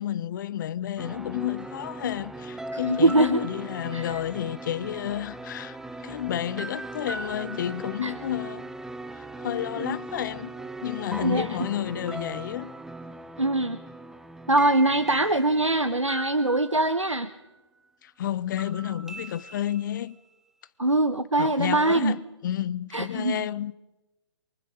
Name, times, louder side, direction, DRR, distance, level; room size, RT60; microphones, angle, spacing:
voice 1, 0.0-5.8 6.0-8.6 9.2-10.5 10.8-12.7 18.0-20.2 21.4-23.8, left 11 dB, 40° left, 0.8 m, -31 dB
sound 1, 1.0-17.6 18.6-20.2, right 2 dB, 5° right, 0.8 m, -39 dB
voice 2, 2.7-3.5 3.9-4.2 8.0-8.1 9.8-10.0 11.2-11.5 13.4-13.8 14.5-17.3 20.8-22.2 22.9-23.5, right 2 dB, 90° right, 1.1 m, -23 dB
28.0 x 23.5 x 5.3 m
figure-of-eight pair, 125°, 15 cm